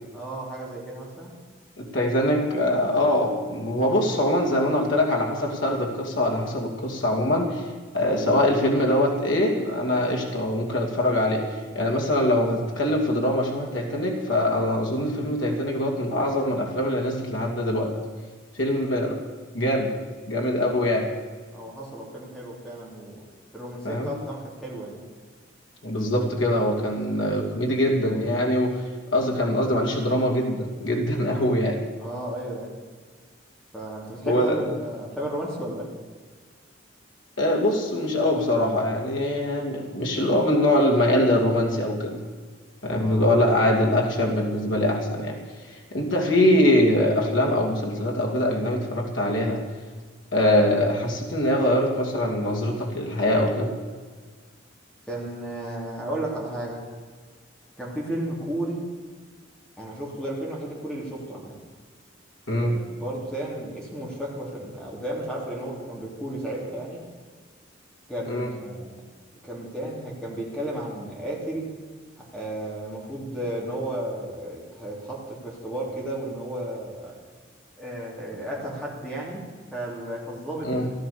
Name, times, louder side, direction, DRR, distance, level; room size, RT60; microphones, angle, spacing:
voice 1, 0.1-1.4 21.5-23.2 23.5-25.0 32.0-32.7 33.7-35.9 42.8-43.3 55.1-56.8 57.8-58.9 59.8-61.6 62.6-67.0 68.1-69.0 69.4-71.7 72.2-77.2 77.8-80.9, right 1 dB, 5° left, -4 dB, 3.0 m, -33 dB
voice 2, 1.8-7.7 7.9-17.9 18.5-19.2 19.5-19.9 20.3-21.0 23.8-24.1 25.8-28.8 29.1-31.7 34.2-34.7 37.4-42.2 42.8-45.3 45.6-49.6 50.3-53.7 62.5-62.8 68.2-68.5 80.6-80.9, left 1 dB, 70° left, 0 dB, 2.7 m, -23 dB
15.5 x 12.0 x 6.9 m, 1.5 s
head